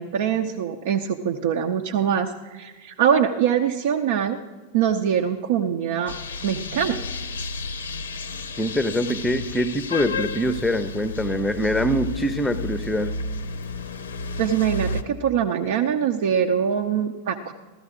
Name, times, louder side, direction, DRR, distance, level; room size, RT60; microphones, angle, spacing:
voice 1, 0.0-4.4 4.7-6.1 6.4-7.0 14.4-17.5, right 8 dB, 55° right, 3 dB, 0.7 m, -23 dB
sound 1, 6.1-15.0, left 3 dB, 70° left, 0.7 m, -32 dB
voice 2, 8.6-13.2, equal, 5° left, 11 dB, 0.7 m, -24 dB
15.5 x 13.0 x 3.7 m, 1.3 s
figure-of-eight pair, 90°, 0 cm